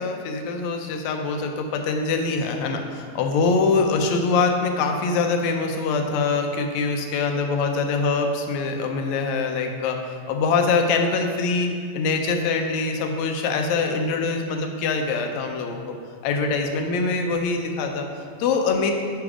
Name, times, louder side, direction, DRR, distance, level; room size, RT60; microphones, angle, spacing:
voice 1, 0.0-10.0 10.3-15.9 16.2-18.9, left 4 dB, 80° left, 4 dB, 2.0 m, -24 dB
9.6 x 3.9 x 4.9 m, 2.2 s
omnidirectional pair, 3.3 m